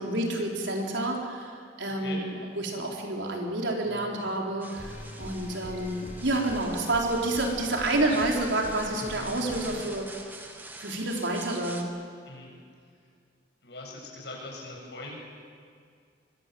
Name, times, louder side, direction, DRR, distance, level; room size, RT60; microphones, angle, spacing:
voice 1, 0.0-10.1 10.8-11.9, right 2 dB, 80° right, 0 dB, 4.4 m, -29 dB
sound 1, 4.6-11.8, right 2 dB, 10° right, 1.8 m, -45 dB
sound 2, 4.7-9.8, left 1 dB, 40° left, 4.2 m, -43 dB
voice 2, 13.6-15.1, left 2 dB, 65° left, -1 dB, 7.5 m, -42 dB
24.5 x 23.0 x 8.0 m, 2.2 s
head